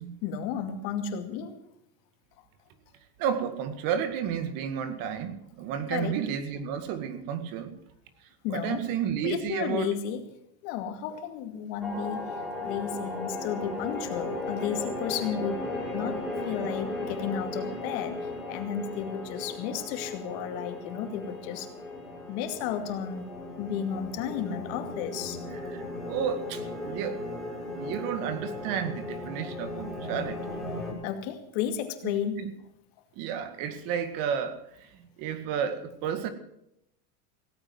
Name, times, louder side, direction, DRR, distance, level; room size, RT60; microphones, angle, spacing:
voice 1, 0.2-1.5 5.9-6.2 8.4-8.8 9.2-10.2 10.6-15.6 15.9-21.7 22.3-23.3 23.6-25.4 31.0-32.4, left 8 dB, 50° left, 6 dB, 2.5 m, -33 dB
voice 2, 3.2-7.8 8.5-9.9 25.5-27.2 27.7-30.5 32.0-32.5 33.2-36.3, right 8 dB, 45° right, 10 dB, 2.0 m, -32 dB
sound 1, 11.8-30.9, left 2 dB, ahead, 6.0 m, -36 dB
17.0 x 8.9 x 7.9 m, 0.79 s
supercardioid pair, 140°, 45 cm